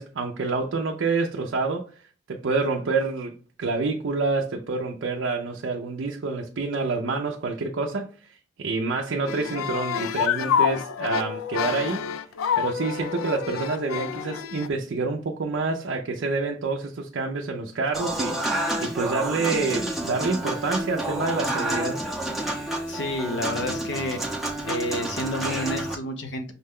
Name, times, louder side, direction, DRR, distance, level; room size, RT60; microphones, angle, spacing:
voice 1, 0.0-3.3 3.6-12.1 12.6-22.0, right 3 dB, 65° right, 0.4 m, -28 dB
sound 1, 9.3-14.7, left 8 dB, 85° left, 0.3 m, -27 dB
Human voice / Acoustic guitar / Piano, 17.9-26.0, right 1 dB, ahead, 0.5 m, -29 dB
voice 2, 22.9-24.2 24.6-26.5, left 1 dB, 60° left, 0.8 m, -29 dB
5.5 x 2.2 x 3.5 m
head